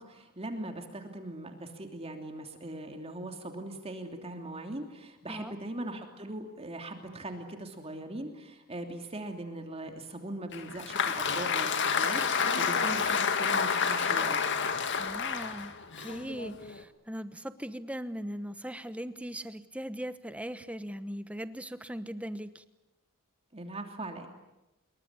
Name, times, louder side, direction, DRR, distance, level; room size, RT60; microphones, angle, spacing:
voice 1, 0.0-14.5 23.5-24.3, right 1 dB, 25° right, 4 dB, 3.0 m, -40 dB
Applause, 10.5-16.8, left 6 dB, 55° left, 2.0 m, -29 dB
voice 2, 15.0-15.7 16.0-22.6, equal, 5° right, 12 dB, 1.1 m, -39 dB
26.5 x 23.0 x 9.8 m, 0.94 s
head